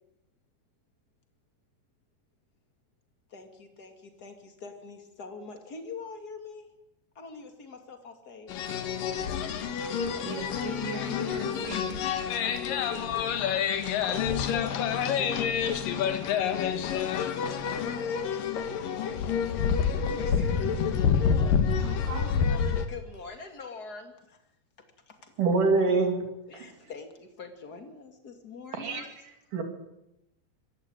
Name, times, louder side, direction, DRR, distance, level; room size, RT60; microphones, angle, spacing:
voice 1, 3.3-6.7 7.1-8.5 10.9-11.3 12.4-18.2 18.5-19.3 20.4-20.8 22.9-24.4 25.1-25.3 26.5-29.1, left 4 dB, 30° left, 5 dB, 2.4 m, -45 dB
sound 1, 8.5-22.9, left 7 dB, 65° left, 3.0 m, -28 dB
voice 2, 10.2-12.0 19.9-20.5 21.7-22.4, equal, 85° right, 4 dB, 6.7 m, -39 dB
voice 3, 25.4-26.2 26.5-26.7 28.7-29.1 29.5-29.6, right 3 dB, 55° right, 4 dB, 4.2 m, -24 dB
24.5 x 15.0 x 8.9 m, 0.89 s
omnidirectional pair, 4.5 m